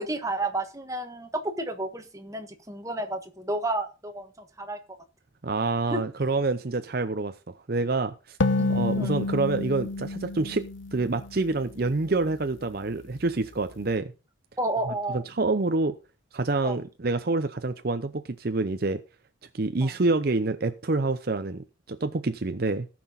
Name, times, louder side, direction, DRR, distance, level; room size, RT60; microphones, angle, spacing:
voice 1, 0.0-4.8 5.9-6.0 8.6-9.2 14.6-15.2 16.6-16.8 19.8-19.9, right 1 dB, 15° right, 6 dB, 1.4 m, -31 dB
voice 2, 5.4-7.3 7.7-8.4 8.7-10.6 10.9-14.1 14.9-16.0 16.3-19.0 19.5-22.9, right 3 dB, 50° right, 9 dB, 0.7 m, -27 dB
sound 1, 8.4-11.9, left 2 dB, 80° left, 1.0 m, -29 dB
18.0 x 6.1 x 4.0 m, 0.31 s
head